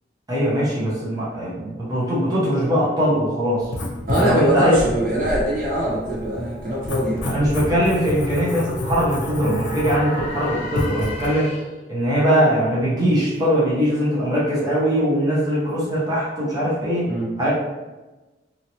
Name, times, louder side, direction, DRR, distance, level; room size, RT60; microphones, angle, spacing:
voice 1, 0.3-3.7 4.1-4.8 7.3-11.5 11.9-17.5, equal, 20° right, -9 dB, 1.0 m, -21 dB
Writing, 3.6-11.3, left 1 dB, 80° left, 0.6 m, -30 dB
voice 2, 4.1-7.4 17.1-17.3, right 1 dB, 50° right, -7 dB, 1.0 m, -22 dB
sound 1, 6.2-11.9, left 2 dB, 35° left, 0.5 m, -36 dB
2.9 x 2.8 x 2.9 m, 1.1 s
head